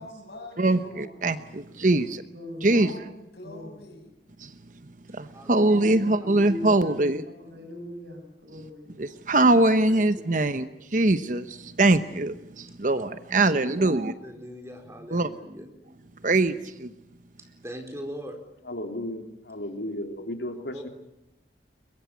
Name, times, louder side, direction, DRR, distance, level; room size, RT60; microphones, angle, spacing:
voice 1, 0.0-1.2 2.0-4.2, left 1 dB, 70° left, 7.5 m, -45 dB
voice 2, 0.6-2.2 2.6-2.9 4.4-4.5 5.1-7.2 9.0-14.1 15.1-15.3 16.2-16.9, right 2 dB, 45° right, 1.0 m, -23 dB
voice 3, 1.7-2.1 2.3-2.9 3.4-3.6 5.7-9.1, left 1 dB, 70° right, 7.3 m, -40 dB
voice 4, 5.2-5.7 6.0-6.1 7.5-7.6 9.9-10.5 13.4-13.9 14.2-15.7 17.6-18.4 20.7-20.8, equal, 15° right, 4.4 m, -41 dB
voice 5, 18.6-20.9, left 1 dB, 85° left, 3.1 m, -34 dB
23.0 x 22.5 x 9.5 m
head